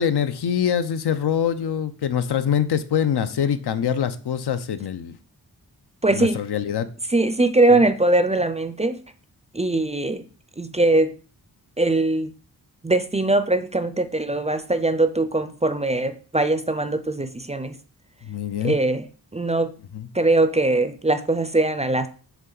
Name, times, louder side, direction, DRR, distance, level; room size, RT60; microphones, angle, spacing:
voice 1, 0.0-5.2 6.1-6.9 7.7-7.8 18.2-18.8 19.9-20.1, left 8 dB, 85° left, 0.7 m, -24 dB
voice 2, 6.0-6.4 7.1-9.0 9.5-10.2 10.6-11.1 11.8-12.3 12.8-17.7 18.6-19.0 19.3-19.7 20.1-22.1, right 2 dB, 20° right, 0.4 m, -21 dB
7.1 x 3.5 x 3.9 m
wide cardioid pair, 135°, 39 cm